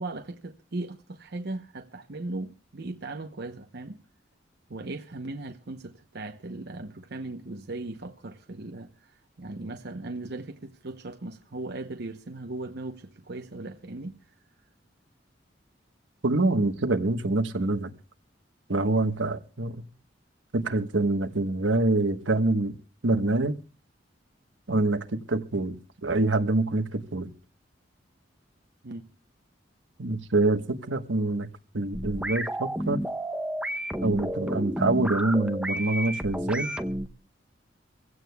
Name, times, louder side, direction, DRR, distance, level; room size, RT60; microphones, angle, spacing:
voice 1, 0.0-4.0 4.7-14.2 28.8-29.1, right 2 dB, 60° right, 0.9 m, -38 dB
voice 2, 16.2-17.9 18.7-19.8 20.5-22.7 23.0-23.6 24.7-25.8 26.0-27.3 30.0-31.5 31.7-33.0 34.0-36.7, right 2 dB, 85° right, 1.3 m, -25 dB
sound 1, 31.9-37.1, right 1 dB, 5° right, 0.9 m, -31 dB
25.0 x 16.0 x 2.3 m
head